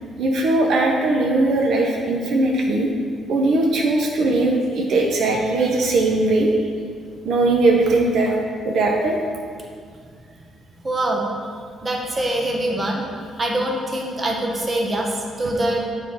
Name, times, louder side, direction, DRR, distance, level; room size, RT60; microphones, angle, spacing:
voice 1, 0.2-2.9 3.3-6.5 7.2-8.4 8.6-9.2, right 2 dB, 75° right, 0 dB, 0.7 m, -19 dB
voice 2, 10.8-11.2 11.8-13.1 13.4-15.9, right 1 dB, 30° right, 0 dB, 1.2 m, -24 dB
7.2 x 4.5 x 4.7 m, 2.2 s
cardioid pair, 90°, 0 cm